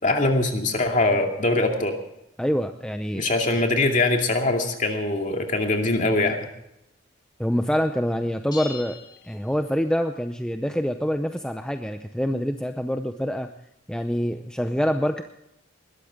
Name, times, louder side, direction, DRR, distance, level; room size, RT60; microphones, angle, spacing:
voice 1, 0.0-2.0 3.1-6.5, left 2 dB, 40° left, 3 dB, 2.4 m, -22 dB
voice 2, 2.4-3.3 7.4-9.0 9.2-13.5 13.9-15.2, equal, 5° left, 6 dB, 0.6 m, -26 dB
sound 1, 8.5-10.1, left 5 dB, 20° left, 3.3 m, -41 dB
20.5 x 13.5 x 3.6 m, 0.81 s
head